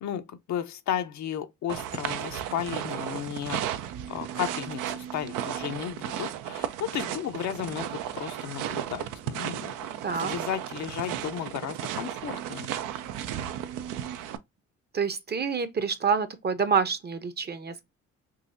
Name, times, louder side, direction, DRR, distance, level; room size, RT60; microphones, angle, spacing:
voice 1, 0.0-3.7 4.1-9.7 10.2-12.7, left 9 dB, 65° left, 0.6 m, -34 dB
sound 1, 1.7-14.4, right 10 dB, 80° right, 0.5 m, -34 dB
voice 2, 10.0-10.4 14.9-17.8, right 6 dB, 30° right, 0.7 m, -27 dB
3.9 x 2.7 x 2.5 m
supercardioid pair, 60°, 31 cm